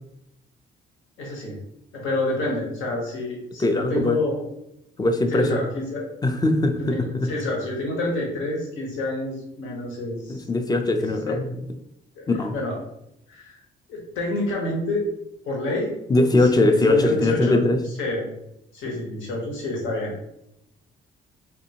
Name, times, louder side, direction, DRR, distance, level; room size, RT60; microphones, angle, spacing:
voice 1, 1.2-1.6 1.9-4.4 5.3-6.1 6.9-10.4 11.2-11.4 12.1-12.8 13.3-13.6 13.9-15.1 15.5-15.9 16.5-17.6 18.0-18.3 18.7-20.1, left 1 dB, 80° left, -1 dB, 1.1 m, -28 dB
voice 2, 3.6-4.2 5.0-5.6 6.2-7.3 10.3-11.5 12.3-12.6 16.1-17.8 18.9-19.0, left 2 dB, 20° left, 6 dB, 0.4 m, -21 dB
3.5 x 2.6 x 2.8 m, 0.84 s
cardioid pair, 90°, 20 cm